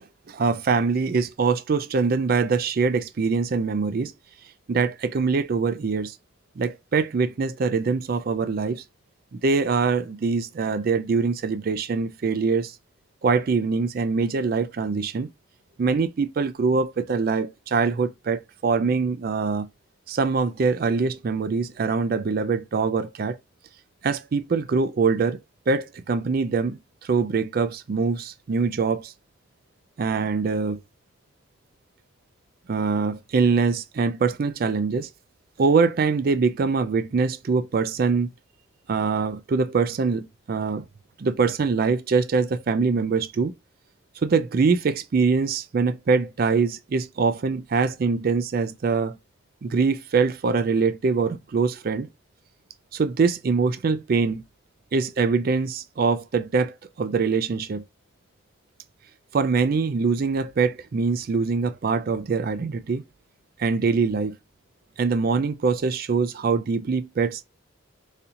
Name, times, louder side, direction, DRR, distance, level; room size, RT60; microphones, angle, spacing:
voice 1, 0.3-4.1 4.7-6.1 6.6-8.8 9.3-12.7 13.2-15.3 15.8-19.7 20.1-23.4 24.0-25.4 25.7-26.8 27.1-29.1 30.0-30.8 32.7-35.1 35.6-38.3 38.9-40.9 41.2-43.5 44.2-49.2 49.6-52.1 52.9-54.4 54.9-57.8 59.3-63.0 63.6-64.4 65.0-67.4, right 4 dB, 45° right, 0.4 m, -23 dB
4.1 x 2.7 x 2.4 m
head